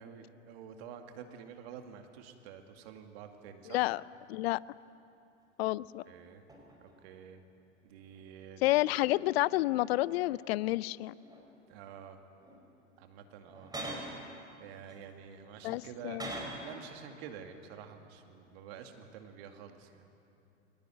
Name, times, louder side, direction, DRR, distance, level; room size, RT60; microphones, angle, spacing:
voice 1, 0.0-3.8 6.1-6.4 6.8-7.4 7.8-8.7 11.7-12.2 13.0-13.7 14.6-16.2 16.6-20.1, right 8 dB, 55° right, 5 dB, 2.3 m, -49 dB
voice 2, 3.7-4.0 4.3-4.6 5.6-6.0 8.6-11.1 15.6-16.3, left 18 dB, 55° left, 21 dB, 0.6 m, -29 dB
sound 1, 5.8-5.9 6.5-7.0 7.8-9.3 9.6-10.6 11.0-11.7 12.4-12.6 13.4-14.2 14.9-16.8 17.1-17.3, right 1 dB, 10° right, 5.0 m, -45 dB
23.0 x 19.0 x 9.2 m, 2.7 s
hypercardioid pair, 90°, 37 cm